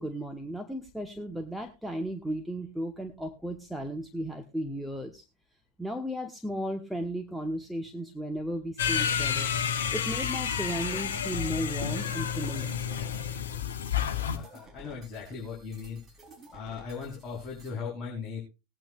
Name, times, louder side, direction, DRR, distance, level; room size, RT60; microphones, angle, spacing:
voice 1, 0.0-5.2 5.8-12.7, right 1 dB, ahead, 4 dB, 1.2 m, -35 dB
sound 1, 8.8-14.4, left 8 dB, 60° left, 1.2 m, -30 dB
sound 2, 10.2-17.7, right 1 dB, 25° right, 4.1 m, -53 dB
voice 2, 14.1-16.0 16.5-18.4, left 5 dB, 20° left, -4 dB, 4.2 m, -38 dB
20.0 x 9.0 x 2.5 m, 0.27 s
figure-of-eight pair, 90°, 0 cm